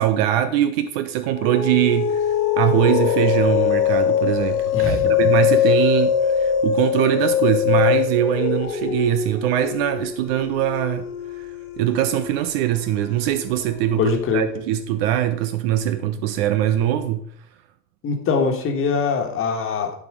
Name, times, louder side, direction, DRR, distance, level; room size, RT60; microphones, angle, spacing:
voice 1, 0.0-2.2 2.6-11.1 11.4-11.5 11.8-17.3, right 12 dB, 40° right, 0.5 m, -22 dB
sound 1, 1.3-14.1, left 9 dB, 65° left, 1.8 m, -22 dB
voice 2, 4.7-5.2 14.0-14.5 18.0-19.9, left 5 dB, 30° left, 1.6 m, -22 dB
11.0 x 4.2 x 4.8 m
figure-of-eight pair, 85°, 46 cm